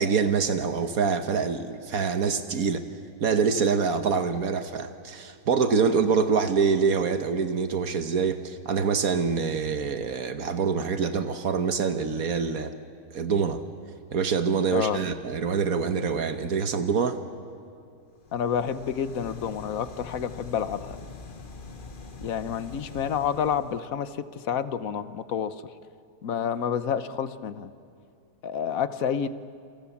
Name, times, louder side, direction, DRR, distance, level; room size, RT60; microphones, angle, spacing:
voice 1, 0.0-2.8 3.2-12.7 13.1-13.6 14.1-17.2, right 5 dB, 75° right, 8 dB, 1.6 m, -25 dB
voice 2, 14.7-15.0 18.3-21.0 22.2-25.5 26.2-27.7 28.4-29.3, left 8 dB, 70° left, 13 dB, 1.4 m, -29 dB
sound 1, 18.2-23.9, left 4 dB, 40° left, 1.4 m, -44 dB
28.5 x 27.5 x 7.2 m, 2.5 s
omnidirectional pair, 1.5 m